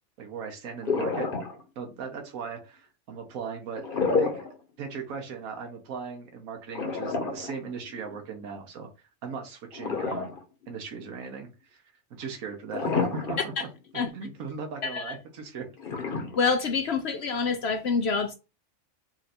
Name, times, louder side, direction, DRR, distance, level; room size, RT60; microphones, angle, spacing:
voice 1, 0.2-1.3 1.8-4.3 4.8-8.9 9.2-10.4 10.7-11.8 12.2-13.5 13.9-15.7, right 5 dB, 80° right, 1.3 m, -38 dB
sound 1, 0.8-1.8 3.7-4.6 4.9-5.0 6.7-8.2 9.7-10.7 11.1-11.2 12.7-13.6 14.0-14.1 15.8-16.8, left 4 dB, 45° left, 1.1 m, -29 dB
voice 2, 14.8-15.2 16.4-18.3, left 5 dB, 65° left, 0.7 m, -27 dB
4.5 x 2.5 x 4.2 m
omnidirectional pair, 1.4 m